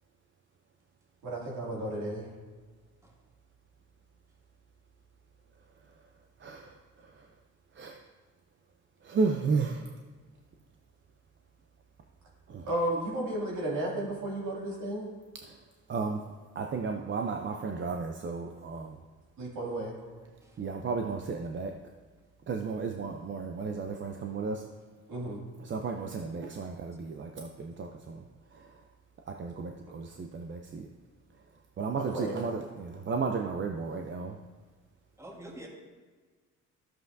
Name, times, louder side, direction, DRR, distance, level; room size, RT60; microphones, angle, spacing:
voice 1, 1.2-2.3 12.7-15.1 19.4-20.0 25.1-25.4 32.1-32.4, right 1 dB, 75° right, -3 dB, 2.5 m, -33 dB
voice 2, 6.4-7.3 7.7-8.0 9.0-9.9 12.5-12.7 15.4-15.6 15.9-16.2 16.6-19.0 20.6-21.8 22.5-24.6 25.6-28.2 28.5-28.8 29.3-30.9 31.8-34.4, right 4 dB, 40° right, 4 dB, 0.6 m, -34 dB
voice 3, 20.2-20.7 35.2-35.7, right 1 dB, 10° right, 0 dB, 1.5 m, -48 dB
11.5 x 7.6 x 2.7 m, 1.4 s
cardioid pair, 90°, 30 cm